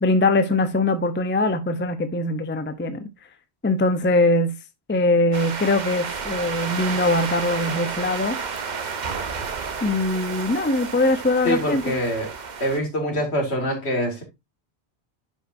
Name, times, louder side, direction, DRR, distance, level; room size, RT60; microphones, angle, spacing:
voice 1, 0.0-3.0 3.6-4.5 4.9-8.4 9.8-11.8, left 2 dB, 15° left, 0.5 m, -22 dB
sound 1, 5.3-12.8, right 5 dB, 45° right, 0.9 m, -31 dB
voice 2, 11.4-12.3 12.6-14.2, equal, 75° left, 2.5 m, -24 dB
10.5 x 5.3 x 2.6 m
omnidirectional pair, 1.1 m